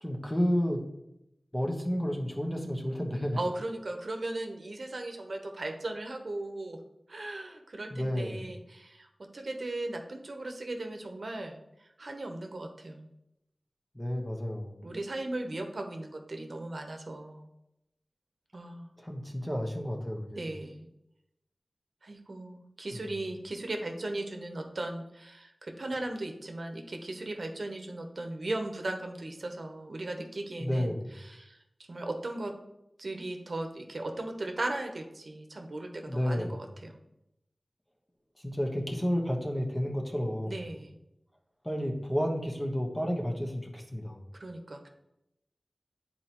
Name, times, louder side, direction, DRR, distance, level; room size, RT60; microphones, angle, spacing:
voice 1, 0.0-0.8 1.5-3.4 7.9-8.5 13.9-14.8 19.0-20.4 30.6-31.1 36.1-36.6 38.4-40.6 41.6-44.2, equal, 15° left, 1 dB, 1.1 m, -31 dB
voice 2, 3.4-6.8 7.1-13.1 14.8-17.5 18.5-18.9 20.4-20.9 22.0-31.6 31.9-32.5 33.0-37.0 40.4-41.0 44.3-44.9, right 2 dB, 65° right, 3 dB, 0.9 m, -37 dB
9.9 x 4.2 x 3.0 m, 0.86 s
wide cardioid pair, 70°, 0 cm